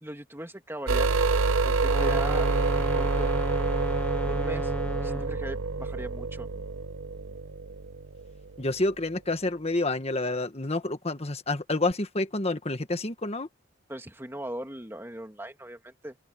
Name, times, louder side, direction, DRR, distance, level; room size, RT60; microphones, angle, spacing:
voice 1, 0.0-1.2 1.6-2.5 2.8-3.3 4.3-4.7 5.0-6.5 13.9-16.2, right 1 dB, 10° right, 2.3 m, -39 dB
sound 1, 0.9-8.6 11.9-12.0, right 4 dB, 80° right, 0.7 m, -27 dB
sound 2, 1.8-5.5, left 1 dB, 5° left, 0.5 m, -34 dB
voice 2, 8.6-13.5, left 2 dB, 30° left, 1.5 m, -28 dB
open air
head